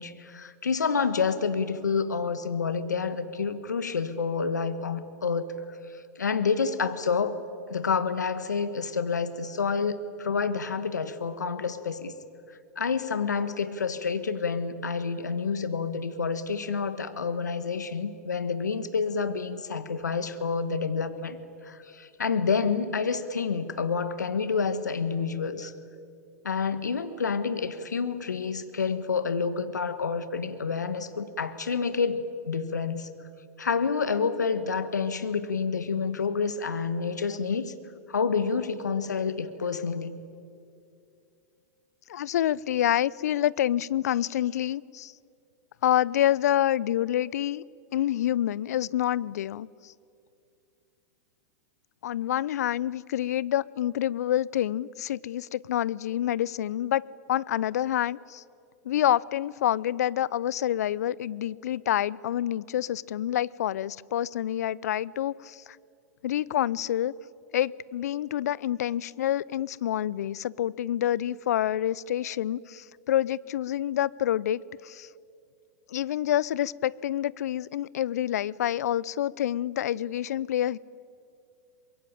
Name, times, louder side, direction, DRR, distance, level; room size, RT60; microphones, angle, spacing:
voice 1, 0.0-7.4 7.7-12.1 12.5-25.7 26.4-33.1 33.6-37.7 38.1-40.2, left 5 dB, 85° left, 12 dB, 1.3 m, -29 dB
voice 2, 42.1-45.1 45.8-47.6 47.9-49.9 52.0-58.4 58.8-65.8 66.2-67.1 67.5-75.1 75.9-80.8, left 12 dB, 65° left, 23 dB, 0.6 m, -27 dB
24.0 x 22.0 x 8.9 m, 2.5 s
hypercardioid pair, 105°, 9 cm